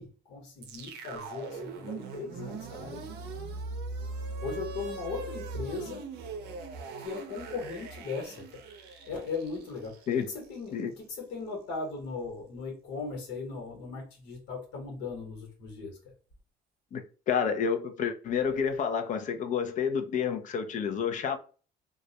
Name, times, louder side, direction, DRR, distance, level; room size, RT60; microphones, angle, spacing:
voice 1, 0.0-3.0 4.4-6.1 7.0-8.4 9.1-16.0, left 4 dB, 90° left, 1.1 m, -38 dB
sound 1, 0.6-10.8, right 3 dB, 80° right, 0.5 m, -40 dB
voice 2, 16.9-21.4, left 7 dB, 50° left, 0.5 m, -29 dB
2.3 x 2.0 x 2.7 m
cardioid pair, 110°, 17 cm